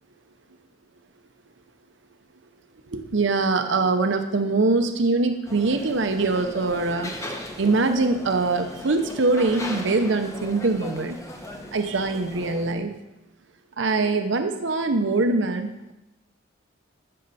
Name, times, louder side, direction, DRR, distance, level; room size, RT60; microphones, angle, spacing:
voice 1, 2.9-7.1 7.6-11.2 11.7-12.9 13.8-15.9, right 3 dB, 70° right, 6 dB, 0.8 m, -23 dB
sound 1, 5.5-12.7, left 1 dB, 15° left, 0.9 m, -38 dB
13.0 x 6.7 x 4.2 m, 0.92 s
head